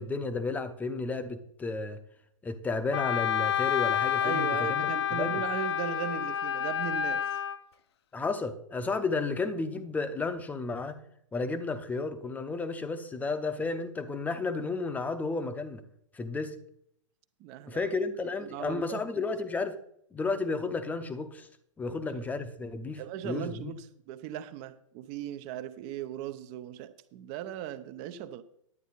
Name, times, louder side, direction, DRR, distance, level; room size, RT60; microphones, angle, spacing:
voice 1, 0.0-2.0 2.4-4.9 5.2-5.4 8.1-11.0 11.3-15.8 16.1-16.5 17.7-19.7 20.1-21.5 21.8-23.7, left 3 dB, 10° left, 0.8 m, -32 dB
Wind instrument woodwind instrument, 2.9-7.6, left 10 dB, 50° left, 0.7 m, -29 dB
voice 2, 4.2-7.3 17.4-17.8 18.4-19.2 21.9-22.0 23.0-28.4, right 10 dB, 35° right, 0.7 m, -38 dB
11.0 x 9.1 x 4.0 m
figure-of-eight pair, 110°, 17 cm